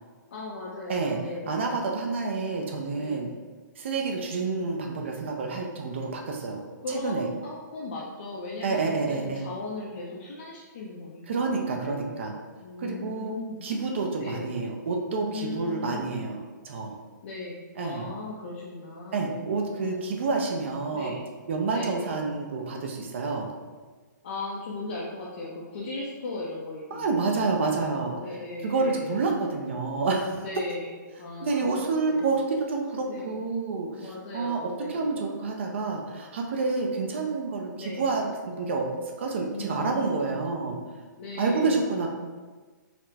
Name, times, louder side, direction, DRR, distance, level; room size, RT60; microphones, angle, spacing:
voice 1, 0.3-1.7 2.9-3.3 6.8-12.2 12.6-13.6 14.2-14.5 15.3-16.1 17.2-20.3 20.9-21.2 21.7-22.2 24.2-27.7 28.1-29.5 30.4-31.8 32.1-32.3 33.1-33.4 34.0-35.1 37.7-38.2 39.5-40.4 41.2-41.9, left 2 dB, 35° left, -5 dB, 0.4 m, -38 dB
voice 2, 1.5-3.3 3.8-6.6 6.9-7.3 8.6-9.4 11.3-12.3 12.8-13.4 13.6-16.9 17.8-18.1 19.1-21.2 21.5-23.5 26.9-28.2 28.6-30.4 31.4-38.8 39.2-40.8 41.4-42.1, right 4 dB, 40° right, 1 dB, 0.4 m, -28 dB
4.2 x 2.0 x 4.1 m, 1.4 s
hypercardioid pair, 175°, 10 cm